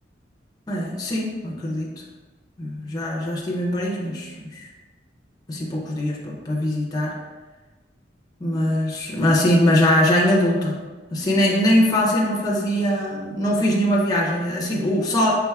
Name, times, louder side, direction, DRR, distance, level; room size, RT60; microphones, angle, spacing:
voice 1, 0.7-1.9 2.6-4.6 5.5-7.1 8.4-10.7 11.1-15.3, equal, 20° left, -3 dB, 0.5 m, -21 dB
4.6 x 3.5 x 2.3 m, 1.3 s
head